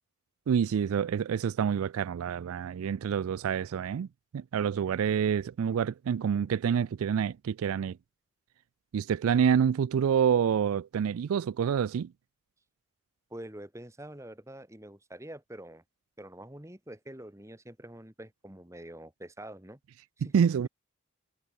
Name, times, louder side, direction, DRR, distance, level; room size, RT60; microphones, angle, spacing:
voice 1, 0.5-4.1 4.3-8.0 8.9-12.1 20.3-20.7, right 7 dB, 80° right, 0.3 m, -27 dB
voice 2, 13.3-15.8 16.2-19.8 20.2-20.3, right 1 dB, 15° right, 1.5 m, -46 dB
head